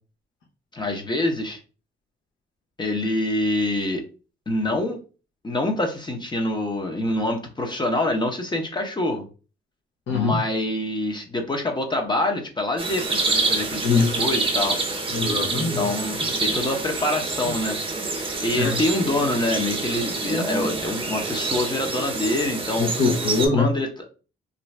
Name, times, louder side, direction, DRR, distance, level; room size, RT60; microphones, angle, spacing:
voice 1, 0.7-1.6 2.8-4.0 4.5-5.0 5.4-9.2 10.1-14.8 15.8-17.8 18.1-22.9 23.5-24.1, left 1 dB, 20° left, 3 dB, 0.7 m, -26 dB
voice 2, 10.1-10.4 13.8-14.2 15.1-15.8 18.6-18.8 22.8-23.7, left 4 dB, 70° left, -2 dB, 0.8 m, -22 dB
sound 1, 12.8-23.5, right 3 dB, 25° right, 0.9 m, -27 dB
2.5 x 2.2 x 3.2 m, 0.34 s
cardioid pair, 90°, 20 cm